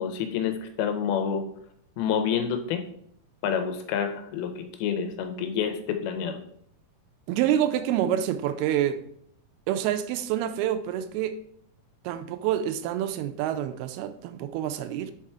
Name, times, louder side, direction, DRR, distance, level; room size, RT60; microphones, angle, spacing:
voice 1, 0.0-1.5 2.0-2.8 3.4-6.4, left 7 dB, 80° left, 2.6 m, -28 dB
voice 2, 7.3-9.0 9.7-11.4 12.0-15.1, right 11 dB, 85° right, 2.4 m, -27 dB
5.6 x 4.8 x 4.5 m
omnidirectional pair, 4.5 m